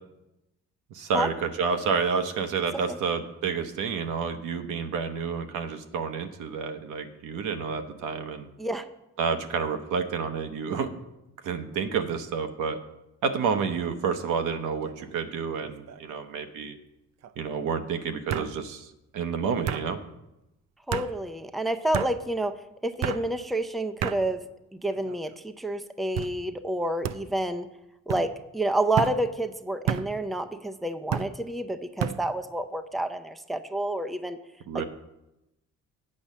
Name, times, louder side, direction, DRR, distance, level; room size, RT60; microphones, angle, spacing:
voice 1, 0.9-8.5 9.2-10.9 11.4-12.8 13.2-16.8 17.4-20.0 34.7-34.8, right 5 dB, 85° right, 7 dB, 0.9 m, -29 dB
sound 1, 14.8-15.2 15.6-16.2 17.2-17.3 18.3-18.5 19.7-19.9 20.9-21.1 21.9-22.1 23.0-23.2 24.0-24.2 24.9-25.4 26.2-26.3 27.0-27.2 28.1-28.3 29.0-29.2 29.9-30.1 31.1-31.3 32.0-32.2, right 9 dB, 60° right, 0.5 m, -30 dB
voice 2, 20.9-24.4 24.8-27.7 28.1-34.4 34.7-34.8, right 1 dB, ahead, 8 dB, 0.5 m, -29 dB
8.6 x 5.4 x 7.2 m, 0.93 s
cardioid pair, 90°, 30 cm